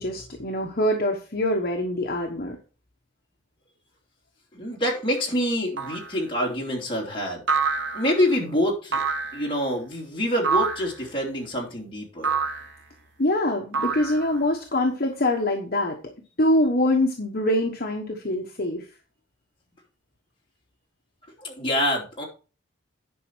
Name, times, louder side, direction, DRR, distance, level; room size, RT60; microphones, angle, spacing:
voice 1, 0.0-2.6 13.2-16.0 16.4-18.9, left 1 dB, 50° left, 1 dB, 1.1 m, -24 dB
voice 2, 4.5-7.4 7.9-9.0 9.3-12.4 21.4-22.2, equal, 25° left, -3 dB, 3.1 m, -26 dB
sound 1, 5.8-6.2 7.5-8.3 8.9-9.5 10.4-11.0 12.2-12.7 13.7-14.5, right 5 dB, 60° right, 1.1 m, -27 dB
10.5 x 5.2 x 4.6 m, 0.35 s
head